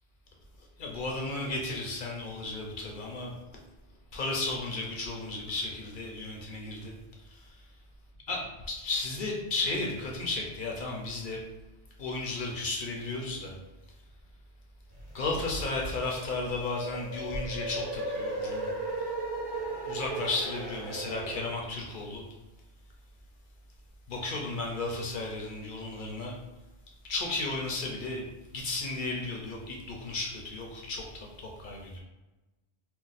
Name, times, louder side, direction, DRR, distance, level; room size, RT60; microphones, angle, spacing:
voice 1, 0.8-3.3 4.1-6.9 7.3-7.4 8.3-11.4 12.0-13.5 15.1-18.7 19.8-22.2 24.1-26.3 27.1-28.3 28.5-32.0, left 2 dB, 55° left, -1 dB, 0.7 m, -34 dB
sound 1, 15.0-21.5, right 2 dB, 25° right, 0.8 m, -36 dB
2.5 x 2.2 x 3.9 m, 1.1 s
omnidirectional pair, 1.2 m